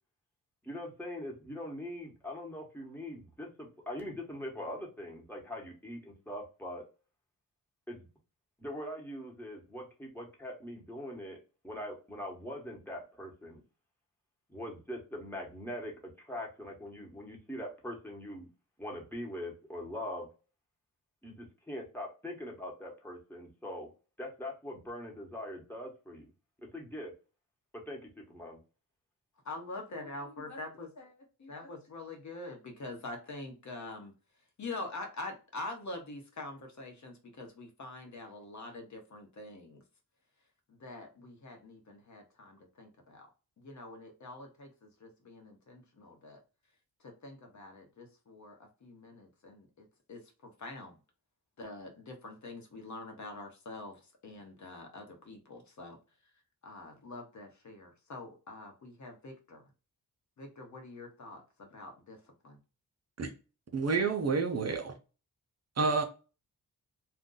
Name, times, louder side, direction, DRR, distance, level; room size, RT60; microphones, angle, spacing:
voice 1, 0.6-6.8 7.9-8.1 8.6-11.4 11.6-13.6 14.5-15.9 16.2-18.5 18.8-20.3 21.2-23.9 24.2-26.3 26.6-27.1 27.9-28.0 28.3-28.6, left 1 dB, 5° left, 1.2 m, -42 dB
voice 2, 29.4-34.1 34.6-39.8 40.7-43.3 43.6-46.4 47.0-51.0 51.6-56.0 56.6-59.6 60.4-62.6, left 2 dB, 55° left, 0.9 m, -45 dB
voice 3, 63.7-64.9 65.8-66.0, right 4 dB, 50° right, 0.6 m, -29 dB
2.6 x 2.2 x 3.8 m
wide cardioid pair, 95°, 35 cm